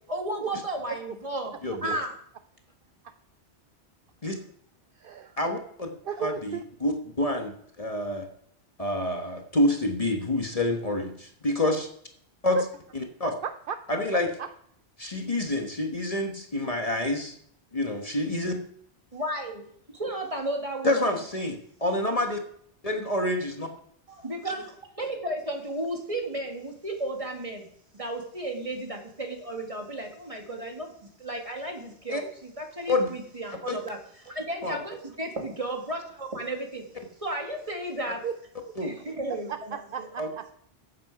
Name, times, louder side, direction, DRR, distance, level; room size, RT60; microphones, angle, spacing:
voice 1, 0.1-2.2 19.1-19.6 19.9-21.1 24.1-27.7 27.9-30.9 31.2-36.9 37.2-38.3 38.8-40.1, right 1 dB, 30° right, 2 dB, 2.0 m, -34 dB
voice 2, 1.6-2.0 4.2-4.4 5.4-5.9 6.2-8.3 8.8-11.9 12.4-12.6 12.9-13.3 13.9-14.3 15.0-17.3 17.7-18.6 20.8-22.4 22.8-23.7 32.1-32.2 32.9-33.1 33.7-33.8 34.6-34.8 38.8-38.9 40.2-40.3, left 1 dB, 35° left, 3 dB, 1.3 m, -27 dB
voice 3, 5.0-5.3 6.0-6.6 12.5-12.7 13.2-13.8 14.4-14.5 38.2-38.3 39.3-40.5, right 7 dB, 60° right, 9 dB, 0.7 m, -34 dB
14.0 x 7.8 x 4.8 m, 0.66 s
omnidirectional pair, 1.2 m